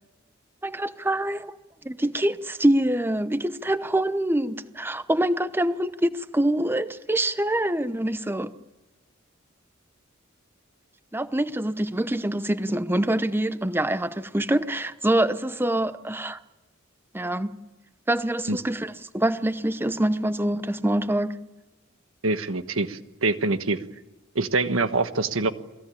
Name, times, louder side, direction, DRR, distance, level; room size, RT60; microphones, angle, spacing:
voice 1, 0.6-1.5 1.8-8.5 11.1-16.4 17.1-17.5 18.1-21.4, right 1 dB, 10° right, 0.8 m, -25 dB
voice 2, 22.2-23.8 24.3-25.5, right 3 dB, 85° right, 1.4 m, -25 dB
28.0 x 20.0 x 8.7 m
head